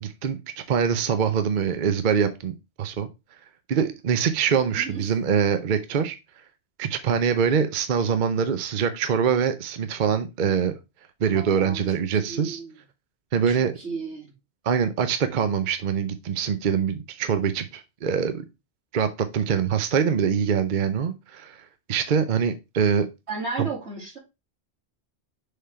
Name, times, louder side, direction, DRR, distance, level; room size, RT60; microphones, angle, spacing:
voice 1, 0.0-0.4 0.7-3.1 3.7-6.2 6.8-10.7 11.2-12.6 13.3-13.7 14.6-18.4 18.9-21.6 21.9-23.1, right 7 dB, 50° right, 9 dB, 0.7 m, -24 dB
voice 2, 4.7-5.0 11.3-11.8 12.1-12.8 13.5-14.3 23.3-24.2, right 4 dB, 85° right, -3 dB, 3.2 m, -34 dB
6.7 x 3.7 x 4.3 m, 0.25 s
omnidirectional pair, 1.1 m